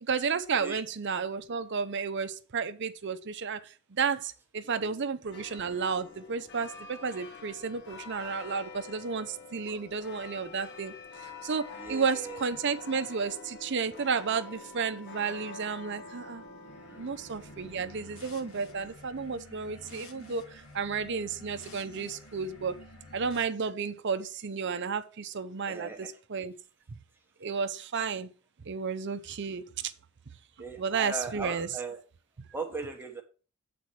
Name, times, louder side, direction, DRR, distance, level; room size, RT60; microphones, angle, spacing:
voice 1, 0.0-10.9 11.2-16.4 17.0-22.8 23.1-26.5 27.4-28.3 28.7-29.9 30.8-31.7, right 5 dB, 55° right, 0.6 m, -32 dB
sound 1, 5.3-18.9, left 4 dB, 50° left, 1.2 m, -47 dB
voice 2, 11.8-12.4 16.9-17.0 25.6-26.1 30.6-32.0 32.5-33.2, right 3 dB, 10° right, 1.2 m, -38 dB
sound 2, 16.6-23.4, left 1 dB, 75° left, 1.7 m, -50 dB
8.1 x 4.2 x 6.1 m
head